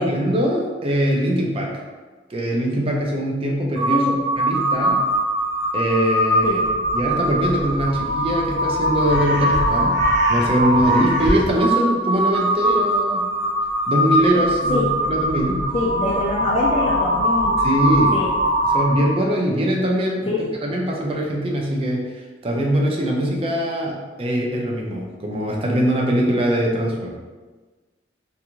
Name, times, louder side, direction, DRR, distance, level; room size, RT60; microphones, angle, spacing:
voice 1, 0.0-1.7 2.3-4.0 4.4-5.0 5.7-6.6 6.9-10.0 10.3-13.3 13.9-14.8 15.1-15.6 17.6-18.1 18.6-20.3 20.6-22.0 22.4-23.9 24.2-27.2, right 1 dB, 30° right, -1 dB, 0.4 m, -22 dB
Crow, 3.8-19.3, equal, 75° right, 0.7 m, -21 dB
voice 2, 15.7-17.5 18.1-18.3 20.3-20.7, left 2 dB, 30° left, -6 dB, 0.3 m, -24 dB
2.4 x 2.3 x 2.9 m, 1.3 s
head